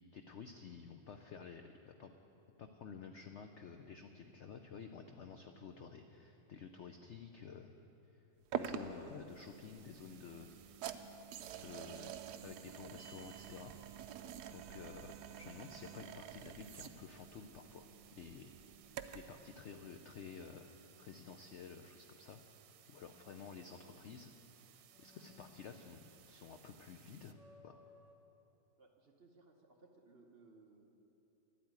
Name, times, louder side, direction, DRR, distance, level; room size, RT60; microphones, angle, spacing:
voice 1, 0.1-2.1 2.6-7.7 8.1-8.2 8.5-10.5 10.9-11.2 11.6-13.7 14.5-18.5 19.1-20.7 21.0-22.4 22.9-24.3 25.0-27.4 27.6-27.8, left 6 dB, 75° left, 6 dB, 0.6 m, -52 dB
sound 1, 8.5-19.4, right 9 dB, 70° right, 1.1 m, -47 dB
sound 2, 9.3-27.3, right 10 dB, 85° right, 1.4 m, -64 dB
sound 3, 20.9-22.3 22.7-24.4 24.9-26.5 26.8-26.9 27.3-28.2, left 3 dB, ahead, 0.9 m, -66 dB
voice 2, 28.8-30.9, right 3 dB, 45° right, 2 dB, 0.9 m, -63 dB
12.0 x 8.6 x 9.5 m, 3.0 s
omnidirectional pair, 1.9 m